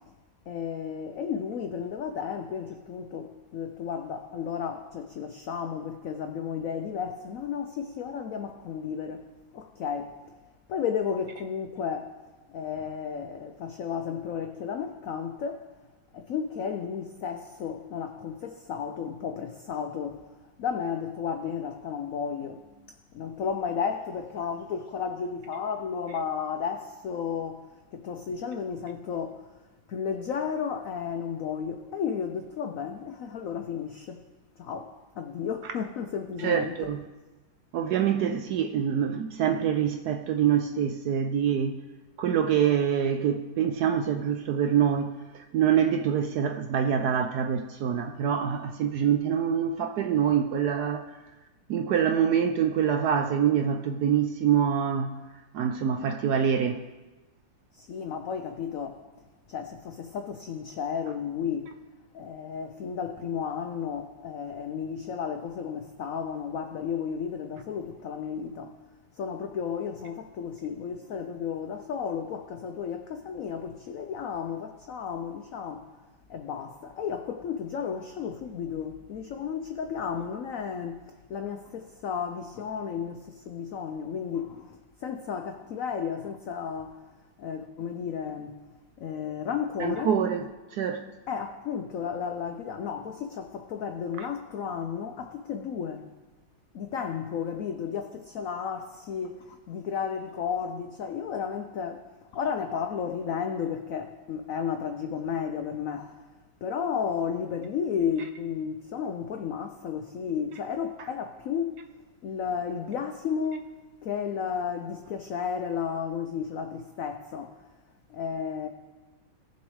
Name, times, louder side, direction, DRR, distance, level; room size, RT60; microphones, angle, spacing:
voice 1, 0.5-9.2 9.5-10.1 10.7-12.1 12.5-15.7 16.1-20.2 20.6-22.6 23.1-27.6 27.9-29.4 29.9-34.2 34.6-36.9 57.7-59.0 59.5-61.7 62.1-68.7 69.2-75.9 76.3-81.0 81.3-87.0 87.4-88.5 89.0-90.1 91.3-96.0 96.7-102.0 102.3-106.1 106.6-111.8 112.2-113.7 114.0-117.6 118.1-118.7, left 7 dB, 85° left, 0.7 m, -33 dB
voice 2, 36.4-37.0 37.7-41.8 42.2-51.0 51.7-55.1 55.5-56.8 89.8-90.5 90.7-91.1 94.2-94.3, right 8 dB, 75° right, 0.9 m, -25 dB
16.5 x 6.9 x 3.1 m
omnidirectional pair, 2.1 m